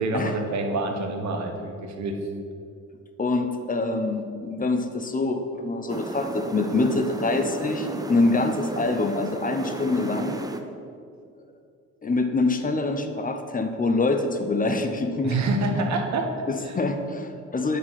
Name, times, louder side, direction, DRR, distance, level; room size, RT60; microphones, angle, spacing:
voice 1, 0.0-2.1 15.2-16.3 16.6-16.7, right 2 dB, 65° right, 3 dB, 1.2 m, -26 dB
voice 2, 3.2-10.4 12.0-15.4 16.5-17.8, left 3 dB, 30° left, 6 dB, 0.7 m, -25 dB
sound 1, 5.9-10.6, right 1 dB, 10° right, 0.6 m, -34 dB
8.2 x 4.8 x 5.7 m, 2.4 s
cardioid pair, 90°, 30 cm